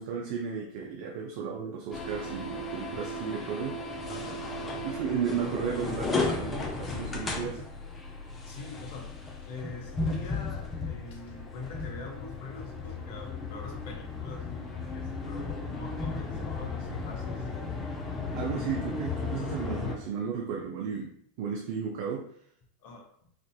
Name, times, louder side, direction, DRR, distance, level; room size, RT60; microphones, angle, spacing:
voice 1, 0.0-3.8 4.8-7.7 18.3-21.1 21.4-22.3, right 6 dB, 60° right, 0 dB, 0.6 m, -34 dB
sound 1, 1.9-20.0, left 3 dB, 20° left, 0.8 m, -35 dB
voice 2, 4.1-4.5 8.4-9.1 9.4-17.5 22.8-23.1, left 3 dB, 60° left, 0 dB, 1.0 m, -44 dB
4.9 x 2.6 x 2.2 m, 0.64 s
hypercardioid pair, 90°, 0 cm